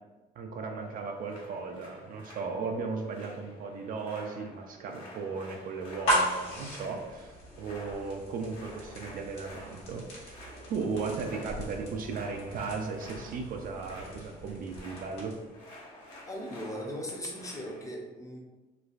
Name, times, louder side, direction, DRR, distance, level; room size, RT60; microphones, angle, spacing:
voice 1, 0.4-10.4 10.7-15.3, right 4 dB, 55° right, 3 dB, 0.4 m, -36 dB
sound 1, 0.8-17.9, left 1 dB, 50° left, 1.3 m, -51 dB
sound 2, 6.0-15.6, equal, 85° left, 1.1 m, -37 dB
voice 2, 16.3-18.4, equal, 20° left, -1 dB, 0.6 m, -38 dB
3.2 x 2.4 x 2.4 m, 1.2 s
cardioid pair, 110°, 17 cm